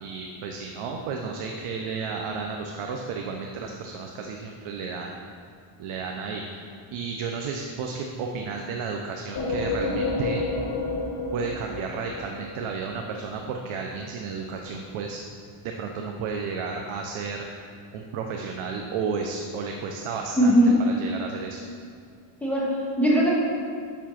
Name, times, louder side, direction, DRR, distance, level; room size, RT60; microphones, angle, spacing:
voice 1, 0.0-5.2 5.8-10.4 11.3-15.2 15.6-21.6, right 5 dB, 75° right, 2 dB, 0.9 m, -33 dB
sound 1, 9.4-13.0, left 3 dB, 45° left, 1.4 m, -29 dB
voice 2, 20.4-20.8 22.4-23.3, equal, 5° left, -7 dB, 2.1 m, -20 dB
7.2 x 6.0 x 5.9 m, 2.2 s
cardioid pair, 110°, 50 cm